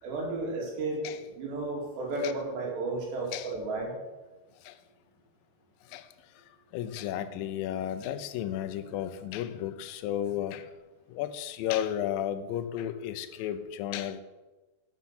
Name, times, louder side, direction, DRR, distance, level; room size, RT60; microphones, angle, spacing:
voice 1, 0.0-4.0, right 2 dB, 80° right, -1 dB, 4.5 m, -33 dB
voice 2, 6.7-10.7 11.1-14.2, left 11 dB, 85° left, 9 dB, 2.0 m, -33 dB
11.5 x 7.1 x 5.8 m, 1.2 s
omnidirectional pair, 4.9 m